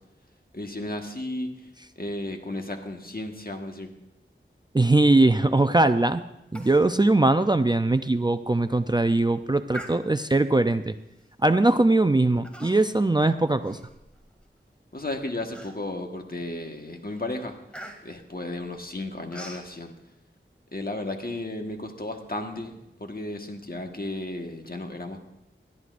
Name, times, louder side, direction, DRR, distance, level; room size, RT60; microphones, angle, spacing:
voice 1, 0.5-1.5 2.0-3.9 14.9-17.6 18.0-19.9 20.7-25.2, left 2 dB, 45° left, 3 dB, 1.4 m, -34 dB
voice 2, 4.7-6.2 6.5-11.0 11.4-13.8, right 2 dB, 20° right, 10 dB, 0.4 m, -21 dB
Human voice, 6.5-6.9 7.2-7.3 7.8-7.9 8.5-8.7 9.7-10.4 11.2-11.4 12.4-13.0 13.4-14.5 14.9-15.0 15.5-16.1 16.6-16.8 17.1-19.7, right 1 dB, 5° left, 2.1 m, -43 dB
20.0 x 12.5 x 2.5 m, 0.89 s
wide cardioid pair, 50°, 21 cm